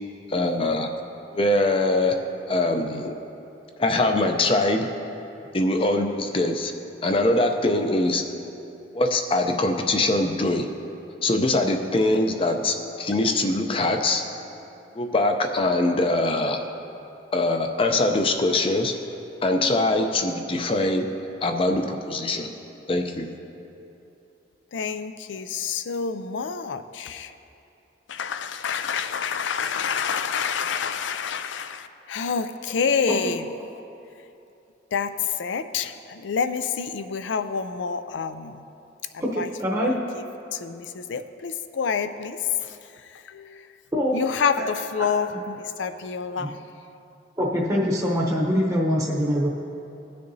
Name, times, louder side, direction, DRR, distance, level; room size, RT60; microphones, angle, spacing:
voice 1, 0.3-0.9 1.3-2.2 2.5-3.1 3.8-4.9 5.5-6.7 7.0-8.2 8.9-10.7 11.2-14.2 14.9-16.6 17.3-18.9 19.4-21.1 21.4-22.5 22.9-23.3, left 2 dB, 30° left, 5 dB, 0.5 m, -23 dB
voice 2, 24.7-27.3 28.1-33.4 34.9-38.6 39.1-40.2 40.5-42.8 43.1-43.7 44.1-46.6, left 6 dB, 80° left, 11 dB, 0.4 m, -28 dB
voice 3, 39.2-39.9 43.9-44.2 46.4-46.5 47.4-49.5, equal, 15° right, -4 dB, 0.8 m, -23 dB
17.5 x 6.7 x 2.7 m, 2.8 s
head